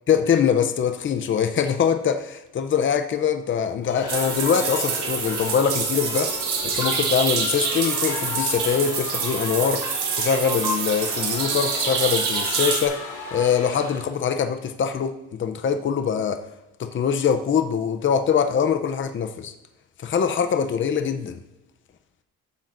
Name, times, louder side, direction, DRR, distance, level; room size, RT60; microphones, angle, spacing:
voice 1, 0.1-6.3 6.6-9.8 10.2-13.0 13.3-16.4 16.8-19.5 20.0-21.4, left 7 dB, 40° left, 7 dB, 0.7 m, -23 dB
sound 1, 3.8-14.0, left 3 dB, 85° left, 2.3 m, -35 dB
sound 2, 4.1-12.8, right 5 dB, 85° right, 1.7 m, -26 dB
14.0 x 7.4 x 2.6 m, 0.97 s
cardioid pair, 90°, 30 cm